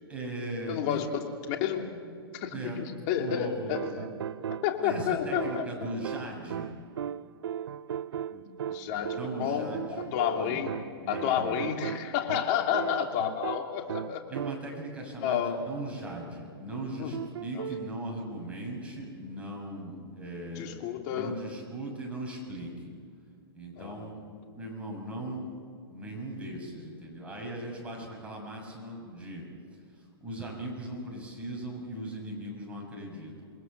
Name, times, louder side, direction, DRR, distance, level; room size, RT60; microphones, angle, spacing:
voice 1, 0.1-1.0 2.5-2.8 3.2-3.8 4.8-6.7 8.9-10.6 11.0-11.6 12.7-12.9 14.3-20.7 21.1-22.9 23.5-24.3 24.5-25.5 25.9-29.4 29.9-33.5, right 1 dB, 10° right, -1 dB, 6.7 m, -39 dB
voice 2, 0.7-1.1 1.5-1.9 2.4-4.1 4.6-5.7 8.3-10.7 11.1-14.2 15.2-15.6 17.0-17.1 17.5-17.7 20.5-21.3 23.7-24.1, left 9 dB, 40° left, 3 dB, 3.1 m, -30 dB
sound 1, 3.3-14.9 17.1-18.0, right 9 dB, 75° right, 0.6 m, -38 dB
28.0 x 21.5 x 6.9 m, 2.3 s
hypercardioid pair, 145°, 13 cm